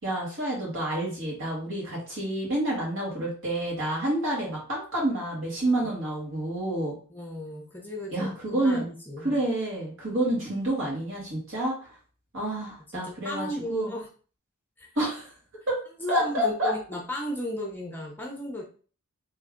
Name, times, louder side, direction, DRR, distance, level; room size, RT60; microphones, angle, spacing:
voice 1, 0.0-6.9 8.1-8.8 9.2-11.7 12.3-13.9 15.0-15.3 15.7-15.8 16.1-16.7, right 1 dB, 65° right, -5 dB, 2.2 m, -28 dB
voice 2, 7.1-9.4 12.9-14.1 14.8-14.9 16.0-18.6, left 1 dB, 10° left, -1 dB, 0.7 m, -35 dB
3.3 x 3.3 x 3.7 m, 0.39 s
head